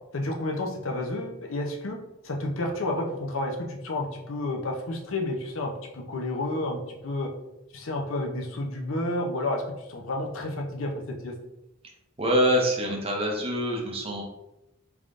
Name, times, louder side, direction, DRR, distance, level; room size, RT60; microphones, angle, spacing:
voice 1, 0.1-2.0 2.2-7.3 7.7-11.3, left 2 dB, 70° left, 1 dB, 0.6 m, -31 dB
voice 2, 12.2-14.2, equal, 30° right, 0 dB, 0.6 m, -25 dB
3.4 x 3.4 x 2.5 m, 0.92 s
head